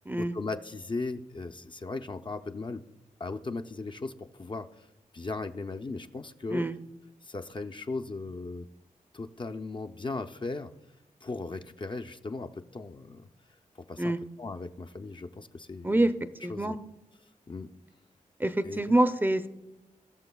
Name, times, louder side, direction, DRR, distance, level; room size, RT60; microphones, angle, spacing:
voice 1, 0.2-2.8 3.2-4.9 5.1-6.6 7.2-8.7 9.1-10.7 11.2-13.3 13.9-14.1 14.4-16.1 16.5-16.8 17.5-17.7 18.6-19.0, left 3 dB, 35° left, 6 dB, 0.5 m, -37 dB
voice 2, 16.4-16.8 18.4-19.5, right 1 dB, 15° right, 10 dB, 0.5 m, -26 dB
18.0 x 6.4 x 2.3 m, 0.97 s
cardioid pair, 50°, 15 cm